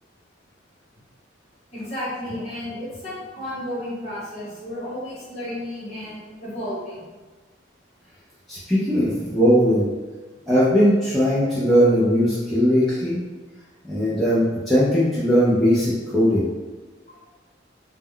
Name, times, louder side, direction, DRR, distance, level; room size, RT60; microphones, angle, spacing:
voice 1, 1.7-7.0 17.1-17.2, left 1 dB, 35° left, -8 dB, 1.0 m, -32 dB
voice 2, 8.5-9.9 10.5-13.2 13.9-16.5, equal, ahead, -12 dB, 0.4 m, -19 dB
2.2 x 2.1 x 3.5 m, 1.3 s
head